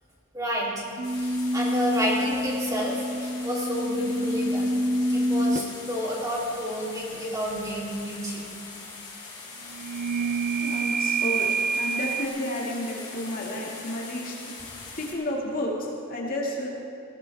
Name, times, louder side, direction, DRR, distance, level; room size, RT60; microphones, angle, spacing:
voice 1, 0.3-0.8 1.2-4.7 5.1-8.4, equal, 15° right, -5 dB, 3.3 m, -30 dB
sound 1, 1.0-15.1, left 3 dB, 20° left, 3.4 m, -42 dB
sound 2, 1.0-5.8 9.7-12.2, right 1 dB, 35° right, 0.5 m, -27 dB
voice 2, 10.6-11.5 11.8-14.3 15.0-16.7, left 1 dB, 40° left, -2 dB, 2.2 m, -31 dB
20.0 x 17.0 x 3.5 m, 2.9 s
head